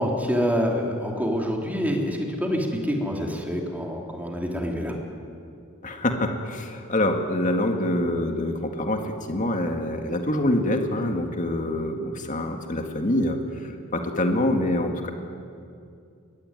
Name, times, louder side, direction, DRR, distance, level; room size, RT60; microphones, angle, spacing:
voice 1, 0.0-4.9, equal, 10° right, 0 dB, 3.3 m, -26 dB
voice 2, 5.8-15.1, left 1 dB, 40° left, 4 dB, 1.9 m, -25 dB
23.0 x 21.0 x 9.7 m, 2.5 s
head